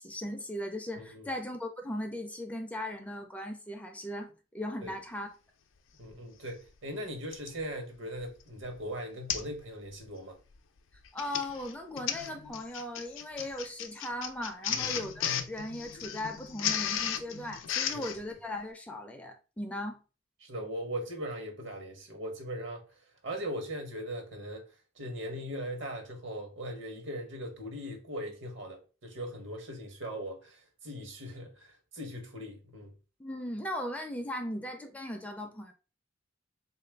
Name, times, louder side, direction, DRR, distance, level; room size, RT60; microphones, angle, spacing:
voice 1, 0.0-5.3 11.1-20.0 33.2-35.7, left 1 dB, 10° left, 0.4 m, -38 dB
voice 2, 1.0-1.3 4.8-4.9 6.0-10.4 14.7-14.9 17.9-18.0 20.4-22.8 23.2-24.6 25.0-32.9, equal, 70° right, 1.0 m, -39 dB
Printer, 6.1-6.2 7.3-7.6 8.2-8.4 8.7-8.8 9.3-9.6 9.9-10.2 10.9-18.2, left 9 dB, 80° left, 0.4 m, -35 dB
3.5 x 2.4 x 3.3 m
head